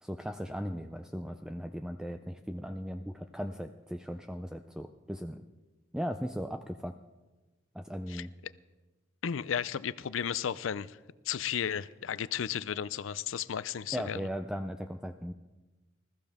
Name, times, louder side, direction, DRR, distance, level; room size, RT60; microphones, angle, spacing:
voice 1, 0.0-5.4 5.9-6.9 7.7-8.3 13.9-15.3, equal, 5° right, 6 dB, 0.4 m, -37 dB
voice 2, 9.2-11.0 11.3-14.2, left 8 dB, 80° left, 17 dB, 0.5 m, -34 dB
20.5 x 14.0 x 3.6 m, 1.2 s
head